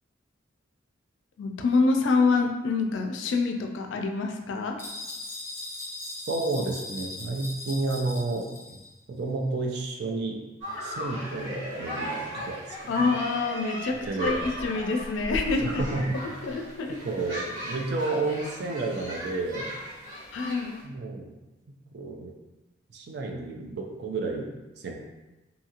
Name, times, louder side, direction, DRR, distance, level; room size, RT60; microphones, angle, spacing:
voice 1, 1.4-4.8 12.9-15.8 16.4-17.0 20.3-20.8, left 4 dB, 70° left, 3 dB, 0.3 m, -26 dB
sound 1, 4.8-8.9, left 2 dB, 10° left, 0.6 m, -39 dB
voice 2, 6.0-8.8 9.2-10.4 10.8-13.1 13.9-14.4 15.6-16.4 17.0-19.7 20.8-21.3 21.9-22.3 22.9-24.5 24.8-24.9, right 3 dB, 55° right, 2 dB, 0.4 m, -31 dB
sound 2, 10.6-20.8, equal, 75° right, 1.5 m, -36 dB
2.7 x 2.4 x 2.8 m, 1.1 s
head